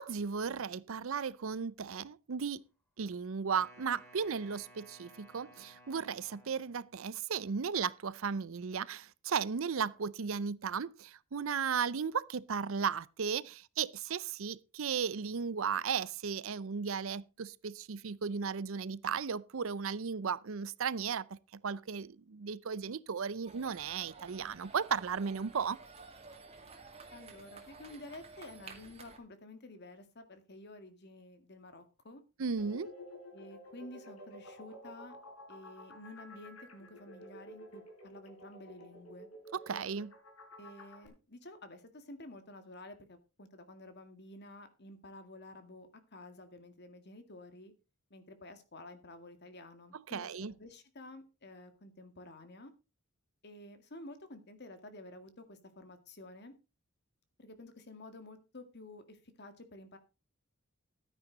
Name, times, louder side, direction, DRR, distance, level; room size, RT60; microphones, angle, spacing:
voice 1, 0.0-2.6 3.0-21.3 21.6-25.8 32.4-32.9 39.5-40.1 49.9-50.5, right 6 dB, 65° right, 0.5 m, -35 dB
Wind instrument woodwind instrument, 3.5-7.0, right 1 dB, 10° left, 6.2 m, -58 dB
sound 1, 23.4-29.2, right 4 dB, 30° right, 2.2 m, -53 dB
voice 2, 27.1-32.2 33.3-35.2 35.5-39.3 40.5-47.7 48.1-52.7 53.4-56.5 57.4-60.0, left 2 dB, 50° left, 2.1 m, -51 dB
sound 2, 32.6-41.1, left 1 dB, 85° left, 4.7 m, -51 dB
13.0 x 9.7 x 3.9 m
head